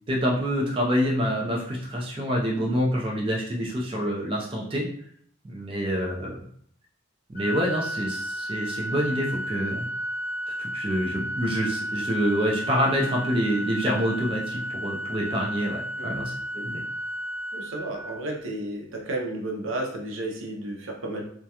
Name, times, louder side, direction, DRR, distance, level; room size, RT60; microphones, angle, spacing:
voice 1, 0.1-4.9 5.5-6.4 7.3-9.9 10.5-16.8, equal, 25° right, -2 dB, 0.4 m, -27 dB
Organ, 7.4-18.4, equal, 45° left, 0.4 m, -33 dB
voice 2, 16.0-16.3 17.5-21.2, right 1 dB, 75° right, 0 dB, 0.6 m, -32 dB
2.3 x 2.2 x 2.7 m, 0.64 s
head